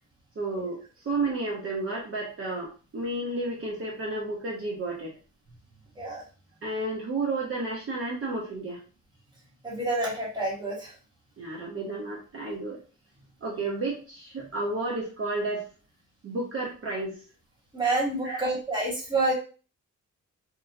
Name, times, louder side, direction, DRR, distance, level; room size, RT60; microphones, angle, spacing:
voice 1, 0.4-5.1 6.6-8.8 11.4-12.8 13.4-15.6 16.2-17.2 18.2-18.5, right 2 dB, 50° right, -4 dB, 0.8 m, -32 dB
voice 2, 9.6-10.9 17.7-19.3, right 2 dB, 15° right, -5 dB, 1.3 m, -28 dB
2.8 x 2.1 x 2.6 m, 0.37 s
cardioid pair, 110°, 30 cm